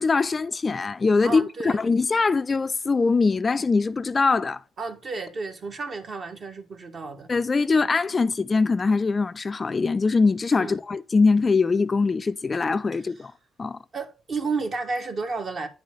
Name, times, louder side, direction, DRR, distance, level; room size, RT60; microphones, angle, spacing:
voice 1, 0.0-4.6 7.3-13.3 13.6-13.8, left 4 dB, 30° left, 0.3 m, -22 dB
voice 2, 1.2-1.8 4.8-7.3 10.6-10.8 13.9-15.7, right 4 dB, 45° right, 1.6 m, -31 dB
9.7 x 4.6 x 3.9 m
cardioid pair, 90°, 0 cm